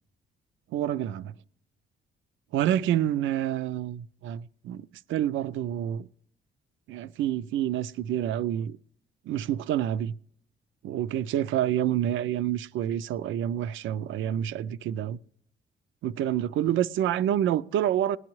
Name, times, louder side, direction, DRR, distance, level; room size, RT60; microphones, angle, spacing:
voice 1, 0.7-1.3 2.5-6.1 6.9-8.8 9.3-10.1 10.8-15.2 16.0-18.2, right 11 dB, 75° right, 0.4 m, -28 dB
19.5 x 11.0 x 3.1 m
cardioid pair, 90°, 20 cm